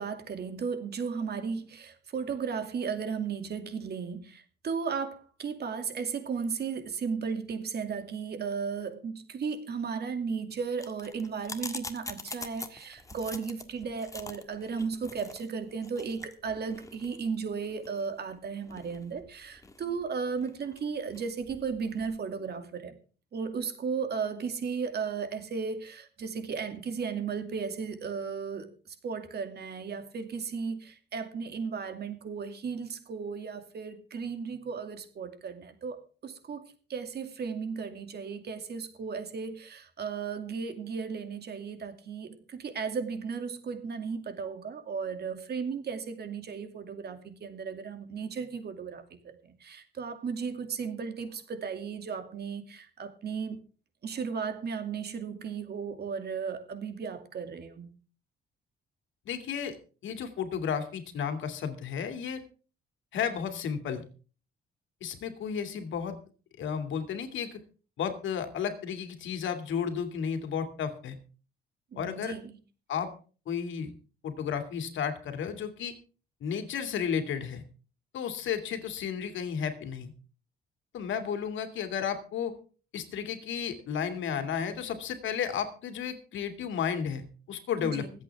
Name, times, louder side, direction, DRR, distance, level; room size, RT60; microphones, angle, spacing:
voice 1, 0.0-22.9 23.3-53.6 54.0-57.9 71.9-72.6 87.8-88.1, right 5 dB, 55° right, 7 dB, 2.4 m, -35 dB
sound 1, 10.8-22.2, left 2 dB, 15° left, 1.7 m, -45 dB
voice 2, 59.3-59.8 60.0-62.4 63.1-64.0 65.0-66.1 66.6-67.6 68.0-71.1 72.0-72.3 72.9-73.1 73.5-73.9 74.2-75.9 76.4-77.6 78.1-80.1 80.9-82.5 82.9-88.1, left 7 dB, 75° left, 7 dB, 2.5 m, -33 dB
25.0 x 8.4 x 3.5 m, 0.38 s
cardioid pair, 90°, 20 cm